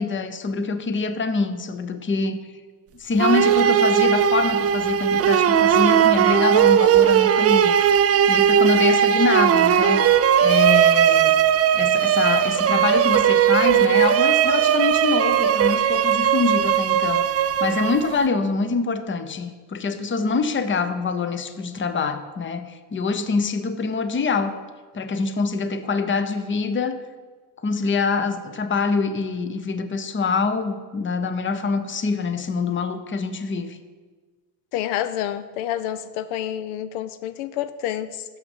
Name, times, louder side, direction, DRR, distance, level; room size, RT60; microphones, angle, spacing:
voice 1, 0.0-2.4 3.0-7.7 8.3-11.3 11.7-24.6 24.9-27.0 27.6-33.8, left 4 dB, 25° left, 11 dB, 0.7 m, -25 dB
sound 1, 3.2-18.3, right 9 dB, 35° right, 0.4 m, -18 dB
voice 2, 34.7-38.2, left 11 dB, 85° left, 12 dB, 0.6 m, -28 dB
6.6 x 5.7 x 7.1 m, 1.4 s
supercardioid pair, 80°, 47 cm